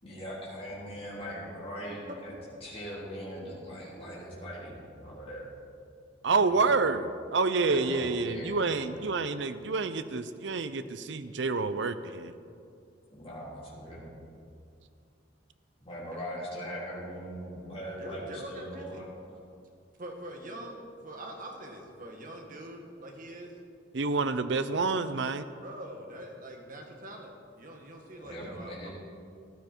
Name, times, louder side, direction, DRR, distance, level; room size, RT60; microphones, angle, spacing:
voice 1, 0.0-2.3 2.6-5.4 6.3-6.8 7.6-9.0 13.1-14.2 15.8-19.4 28.2-28.9, equal, 30° left, -7 dB, 3.5 m, -41 dB
voice 2, 6.2-12.3 23.9-25.4, right 4 dB, 65° right, 11 dB, 0.6 m, -28 dB
voice 3, 18.0-19.1 20.0-23.5 25.6-27.3 27.6-28.9, right 1 dB, 45° right, 2 dB, 1.8 m, -44 dB
14.5 x 12.5 x 4.6 m, 2.4 s
head